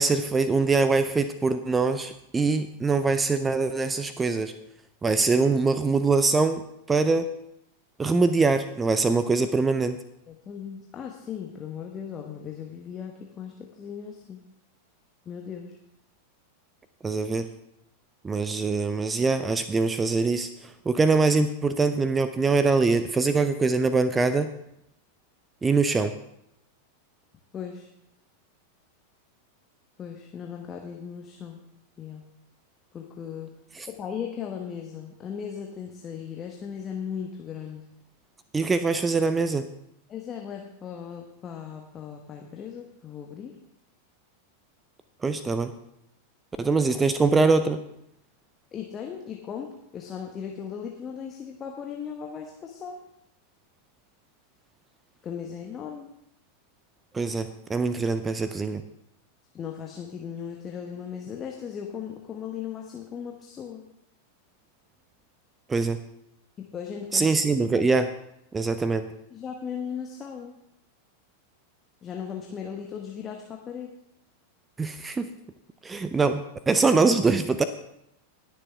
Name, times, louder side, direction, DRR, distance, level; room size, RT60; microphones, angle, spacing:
voice 1, 0.0-4.5 5.0-6.6 6.9-7.3 8.0-10.0 17.0-17.5 18.2-24.5 25.6-26.1 33.7-33.9 38.5-39.7 45.2-45.7 46.6-47.8 57.1-58.8 65.7-66.0 67.1-68.1 68.5-69.1 74.8-75.3 75.8-77.6, right 4 dB, 15° right, 12 dB, 0.5 m, -23 dB
voice 2, 10.3-14.4 15.3-15.7 27.5-27.9 30.0-31.6 32.0-32.2 32.9-33.5 33.9-37.8 40.1-43.5 48.7-53.0 55.2-56.1 59.5-63.8 66.6-67.3 69.3-70.5 72.0-73.9, left 7 dB, 25° left, 2 dB, 1.1 m, -37 dB
20.5 x 6.9 x 3.4 m, 0.79 s
figure-of-eight pair, 90°, 0 cm